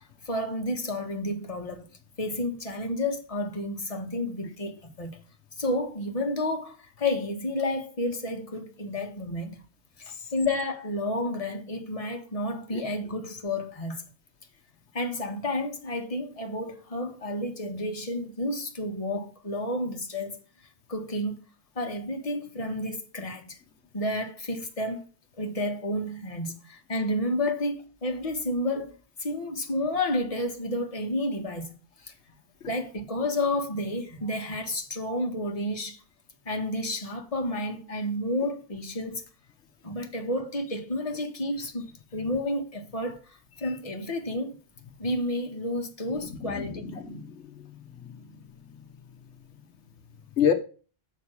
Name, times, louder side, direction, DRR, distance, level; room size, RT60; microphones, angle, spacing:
voice 1, 0.0-1.9 2.2-5.2 5.6-9.6 10.0-14.0 14.9-20.4 20.9-21.4 21.7-23.6 23.9-25.0 25.4-32.1 32.7-36.0 36.4-39.2 39.8-44.5 45.0-46.8, left 1 dB, 30° left, 1.5 m, -31 dB
voice 2, 46.4-47.7 48.0-48.3 50.4-50.5, left 8 dB, 85° left, 1.3 m, -28 dB
7.1 x 5.7 x 6.2 m
omnidirectional pair, 1.1 m